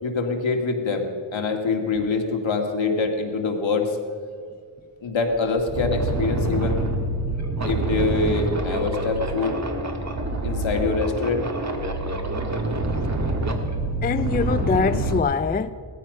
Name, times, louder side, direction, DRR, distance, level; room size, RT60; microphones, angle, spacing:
voice 1, 0.0-4.0 5.0-6.9 7.7-9.6 10.4-11.5, left 4 dB, 70° left, 2.0 m, -24 dB
sound 1, 4.8-4.9 5.3-15.2, right 2 dB, 35° right, 1.6 m, -26 dB
voice 2, 14.0-15.7, left 5 dB, 20° left, 0.3 m, -23 dB
17.5 x 13.5 x 5.4 m
wide cardioid pair, 105°, 48 cm